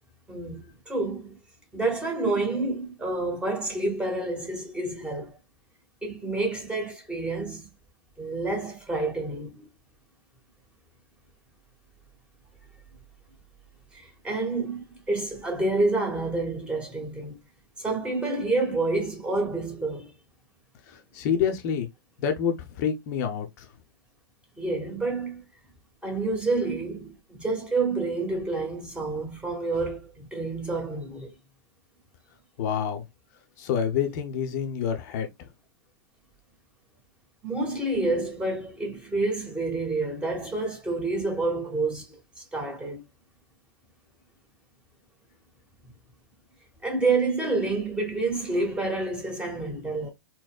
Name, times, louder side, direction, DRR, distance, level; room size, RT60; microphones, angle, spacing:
voice 1, 0.3-1.4 1.7-5.4 6.0-7.7 8.2-9.7 13.9-17.4 17.8-20.1 24.6-25.4 26.0-31.3 37.4-42.2 42.5-43.0 46.8-50.1, right 3 dB, 10° right, 1.1 m, -28 dB
voice 2, 20.9-21.9 22.2-23.7 32.6-33.0 33.6-35.3, left 8 dB, 45° left, 0.6 m, -27 dB
4.1 x 2.1 x 2.3 m
figure-of-eight pair, 105°, 12 cm